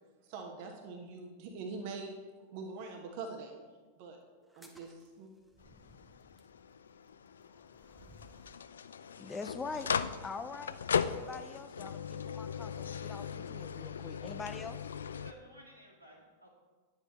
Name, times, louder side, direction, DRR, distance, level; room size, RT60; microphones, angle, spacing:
voice 1, 0.2-2.1 2.5-3.5 4.0-4.2 4.5-5.3, right 4 dB, 45° right, 3 dB, 1.1 m, -43 dB
sound 1, 4.4-8.7, equal, 5° right, 1.1 m, -61 dB
sound 2, 5.6-15.3, left 7 dB, 70° left, 0.3 m, -38 dB
voice 2, 9.1-9.9 10.2-10.8 11.0-14.8, left 4 dB, 15° left, 9 dB, 0.5 m, -44 dB
voice 3, 15.2-16.5, equal, 85° right, -4 dB, 2.5 m, -57 dB
9.6 x 8.0 x 4.1 m, 1.4 s
figure-of-eight pair, 90°, 0 cm